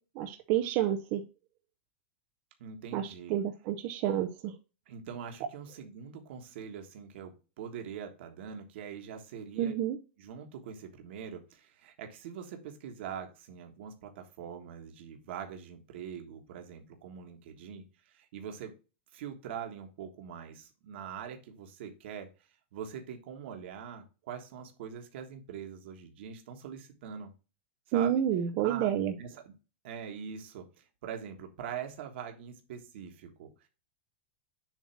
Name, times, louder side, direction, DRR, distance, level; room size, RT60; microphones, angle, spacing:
voice 1, 0.2-1.2 2.9-4.5 9.6-10.0 27.9-29.1, right 10 dB, 45° right, 5 dB, 0.7 m, -29 dB
voice 2, 2.6-3.3 4.9-9.7 10.2-18.7 19.1-22.3 22.7-27.3 27.9-28.2 28.6-29.5 29.8-33.7, right 8 dB, 65° right, 4 dB, 1.5 m, -43 dB
7.3 x 2.9 x 5.9 m, 0.32 s
supercardioid pair, 140°, 7 cm